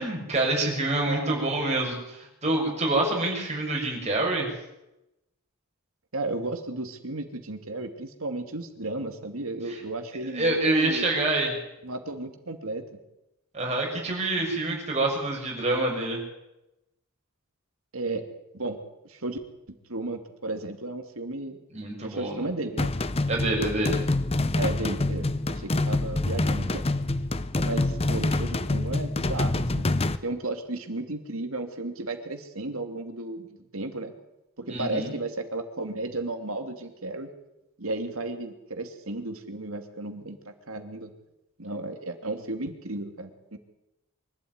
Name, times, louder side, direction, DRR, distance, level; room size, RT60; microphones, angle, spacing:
voice 1, 0.0-4.5 9.7-9.8 10.3-11.5 13.5-16.2 21.7-22.3 23.3-24.0 34.7-35.1, right 2 dB, 30° right, -1 dB, 6.6 m, -26 dB
voice 2, 1.1-1.5 6.1-11.1 11.8-12.8 17.9-18.2 18.5-18.8 19.0-19.4 19.9-21.6 22.0-22.9 24.6-26.9 27.6-29.9 30.2-34.1 34.6-37.3 37.8-41.1 41.6-43.6, right 2 dB, 80° right, 6 dB, 2.7 m, -34 dB
sound 1, 22.8-30.2, left 2 dB, 30° left, 0.8 m, -26 dB
24.0 x 12.5 x 9.5 m, 0.91 s
head